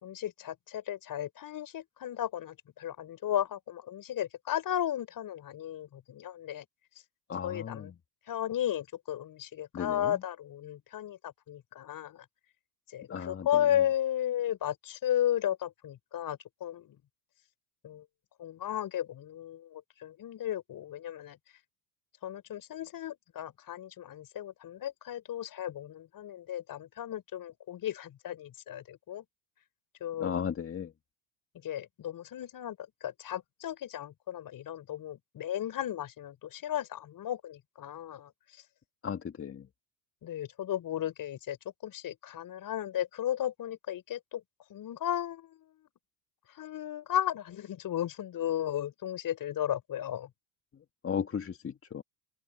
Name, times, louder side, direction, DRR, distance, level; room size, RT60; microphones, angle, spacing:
voice 1, 0.0-6.6 7.4-7.9 8.3-12.2 12.9-17.0 17.8-18.0 18.4-21.4 22.2-29.2 30.0-30.5 31.6-32.8 33.0-38.3 40.2-41.6 41.8-44.4 44.7-45.9 46.6-50.3, left 11 dB, 45° left, 5.8 m, -34 dB
voice 2, 7.3-7.9 9.7-10.0 13.1-13.5 30.2-30.9 39.0-39.6 51.0-52.0, left 7 dB, 30° left, 1.9 m, -35 dB
open air
supercardioid pair, 90°, 46 cm